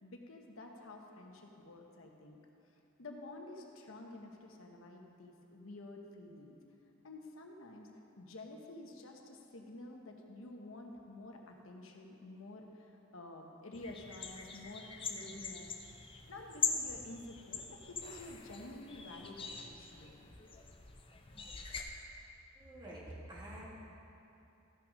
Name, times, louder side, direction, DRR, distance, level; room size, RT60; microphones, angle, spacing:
voice 1, 0.0-2.4 3.0-6.6 7.0-7.9 8.2-15.7 16.3-20.3, left 2 dB, 80° left, 2 dB, 1.0 m, -50 dB
sound 1, 13.7-21.8, left 5 dB, 25° left, 0.6 m, -42 dB
voice 2, 22.6-23.6, right 1 dB, 20° right, -6 dB, 2.0 m, -48 dB
13.5 x 6.2 x 5.0 m, 2.9 s
head